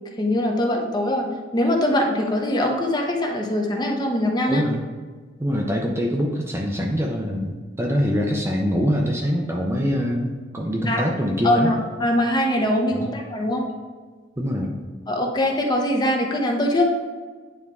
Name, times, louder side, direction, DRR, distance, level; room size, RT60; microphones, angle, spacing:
voice 1, 0.2-4.6 10.9-11.0 11.4-13.7 15.1-16.8, left 1 dB, 20° left, 1 dB, 0.8 m, -22 dB
voice 2, 4.5-4.8 5.4-11.7 12.9-13.1 14.4-14.8, equal, 15° right, 0 dB, 0.5 m, -24 dB
9.4 x 3.5 x 3.5 m, 1.4 s
head